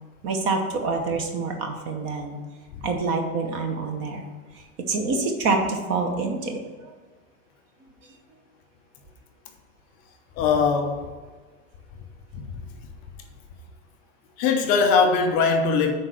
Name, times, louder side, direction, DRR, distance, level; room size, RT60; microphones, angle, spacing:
voice 1, 0.2-2.4 2.8-4.2 4.9-6.6, right 3 dB, 30° right, 4 dB, 0.8 m, -26 dB
voice 2, 10.4-11.1 12.3-12.6 14.4-15.9, left 5 dB, 20° left, 4 dB, 0.5 m, -21 dB
6.3 x 4.5 x 6.1 m, 1.4 s
supercardioid pair, 160°, 42 cm